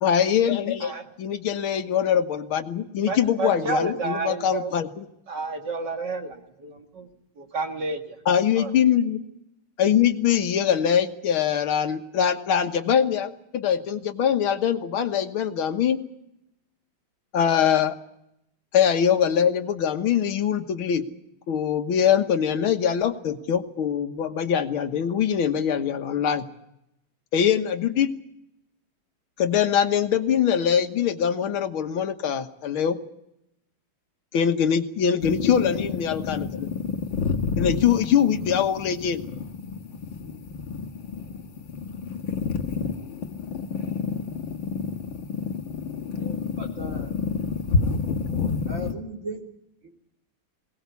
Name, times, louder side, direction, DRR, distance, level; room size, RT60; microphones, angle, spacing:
voice 1, 0.0-5.1 8.3-9.2 9.8-16.0 17.3-18.0 18.7-21.0 21.5-26.4 27.3-28.1 29.4-33.0 34.3-36.7 37.6-39.2, left 8 dB, 85° left, 7 dB, 2.1 m, -23 dB
voice 2, 3.0-4.7 5.3-7.1 7.4-8.2 8.6-8.7, right 3 dB, 55° right, 4 dB, 2.4 m, -30 dB
sound 1, 35.2-48.9, left 5 dB, 70° left, 2.2 m, -29 dB
voice 3, 46.1-47.1 48.7-49.4 49.8-49.9, equal, 35° right, 0 dB, 4.2 m, -37 dB
22.0 x 18.5 x 8.3 m, 0.83 s
omnidirectional pair, 2.2 m